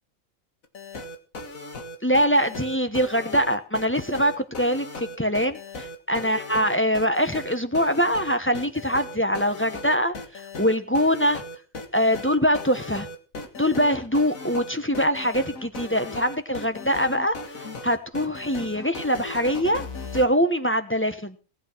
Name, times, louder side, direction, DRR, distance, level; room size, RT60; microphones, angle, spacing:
sound 1, 0.6-20.3, left 2 dB, 85° left, 2.2 m, -37 dB
voice 1, 2.0-11.4 11.9-13.1 13.6-17.4 17.8-19.9 20.1-21.4, equal, 10° left, 8 dB, 1.1 m, -23 dB
18.5 x 9.0 x 6.1 m, 0.36 s
omnidirectional pair, 1.4 m